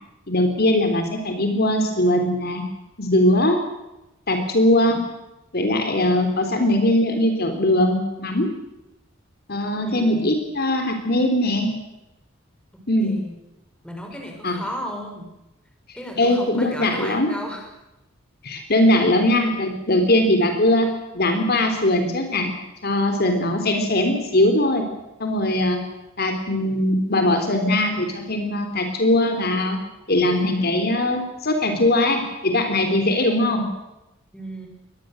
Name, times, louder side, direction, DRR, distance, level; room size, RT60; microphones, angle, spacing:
voice 1, 0.3-2.6 3.0-3.6 4.3-5.0 5.5-8.5 9.5-11.7 12.9-13.1 14.4-14.6 16.2-17.3 18.4-20.9 21.1-22.5 22.8-24.8 25.2-25.8 26.2-29.8 30.1-33.6, left 1 dB, 50° left, 5 dB, 3.5 m, -20 dB
voice 2, 9.8-10.4 13.0-13.3 13.8-15.3 15.9-17.7 34.3-34.7, equal, 5° left, 2 dB, 5.9 m, -34 dB
24.0 x 20.5 x 8.0 m, 0.95 s
head